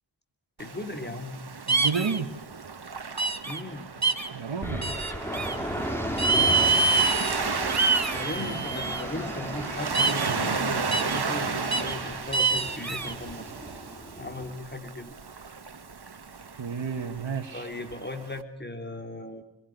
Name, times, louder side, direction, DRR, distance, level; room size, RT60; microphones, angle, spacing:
voice 1, 0.6-1.4 3.5-3.9 6.3-7.1 8.1-13.5 14.2-15.1 17.5-19.4, left 2 dB, 25° left, 5 dB, 3.5 m, -37 dB
Waves surf, 0.6-18.4, right 5 dB, 60° right, 1.8 m, -34 dB
sound 1, 1.7-2.2 3.2-3.6 4.0-4.3 4.8-5.5 6.2-7.4 7.7-9.0 9.9-10.3 10.9-11.2 11.7-11.9 12.3-13.1, right 4 dB, 35° right, 1.9 m, -25 dB
voice 2, 1.7-2.3 4.3-4.9 8.4-8.6 16.6-17.7, right 5 dB, 80° right, 4 dB, 1.8 m, -31 dB
sound 2, 4.6-14.5, equal, 5° left, 3.8 m, -36 dB
27.5 x 22.5 x 9.5 m, 0.79 s
wide cardioid pair, 90°, 44 cm